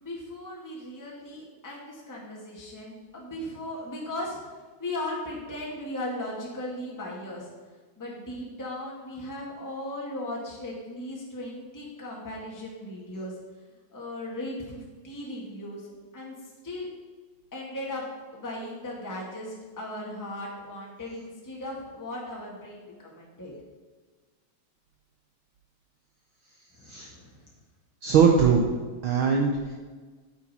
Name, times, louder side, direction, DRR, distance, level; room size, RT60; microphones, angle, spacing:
voice 1, 0.0-4.4 4.8-7.5 8.0-13.3 13.9-15.9 16.1-16.9 17.5-18.0 18.3-23.5 26.7-27.4, left 1 dB, 10° left, -3 dB, 1.5 m, -37 dB
voice 2, 28.0-28.7 29.0-29.7, right 6 dB, 85° right, 1 dB, 1.1 m, -21 dB
9.1 x 8.3 x 4.3 m, 1.4 s
omnidirectional pair, 3.3 m